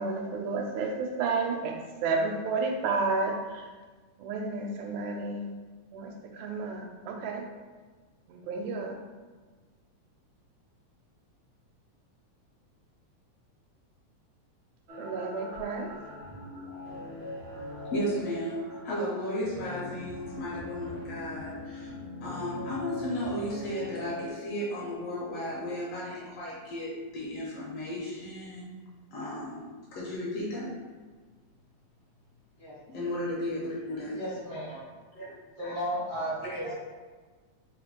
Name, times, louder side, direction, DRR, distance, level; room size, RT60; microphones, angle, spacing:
voice 1, 0.0-3.6 4.2-5.5 5.9-7.4 8.3-8.9 15.0-15.9, right 4 dB, 85° right, 2 dB, 1.9 m, -31 dB
sound 1, 14.9-24.3, left 1 dB, 65° right, 1.1 m, -42 dB
voice 2, 17.9-22.0 22.2-28.7 29.1-29.6 29.9-30.8 32.9-34.2 35.1-35.3 35.6-35.8 36.4-36.7, left 1 dB, 75° left, -5 dB, 1.6 m, -34 dB
voice 3, 34.1-34.8 35.6-36.7, equal, 45° right, -11 dB, 0.4 m, -34 dB
4.5 x 2.5 x 2.9 m, 1.4 s
omnidirectional pair, 3.3 m